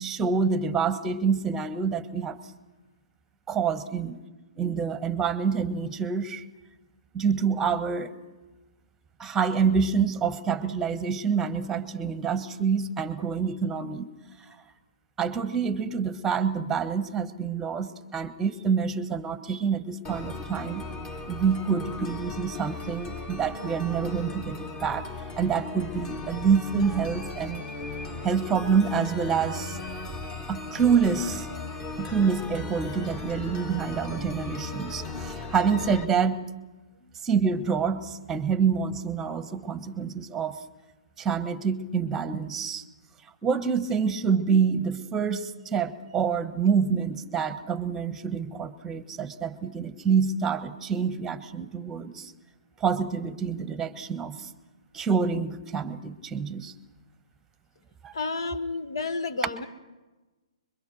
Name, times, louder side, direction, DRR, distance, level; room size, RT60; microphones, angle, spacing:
voice 1, 0.0-2.4 3.5-4.2 4.6-6.4 7.1-8.1 9.2-14.1 14.4-14.6 15.2-20.8 21.3-25.1 25.4-27.6 28.2-29.8 30.5-31.5 32.0-36.4 37.2-40.6 41.2-42.8 43.4-52.3 52.8-54.5 54.9-56.7 58.0-58.1, right 6 dB, 10° right, 13 dB, 1.3 m, -27 dB
sound 1, 20.0-36.0, left 3 dB, 20° left, 1.8 m, -37 dB
voice 2, 58.1-59.7, left 3 dB, 55° left, 10 dB, 1.8 m, -31 dB
25.0 x 23.0 x 6.4 m, 1.2 s
figure-of-eight pair, 125°, 3 cm